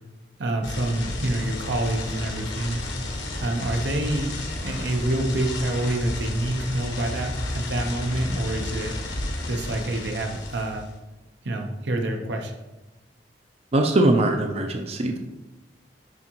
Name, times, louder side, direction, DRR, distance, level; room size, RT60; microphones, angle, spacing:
voice 1, 0.4-2.9 3.4-4.3 4.6-8.9 9.5-10.9 11.4-12.5, right 1 dB, 75° right, 3 dB, 0.9 m, -27 dB
sound 1, 0.6-10.9, left 2 dB, 80° left, 1.2 m, -32 dB
voice 2, 13.7-15.2, right 2 dB, 35° right, 3 dB, 0.5 m, -21 dB
11.0 x 3.7 x 3.0 m, 1.0 s
head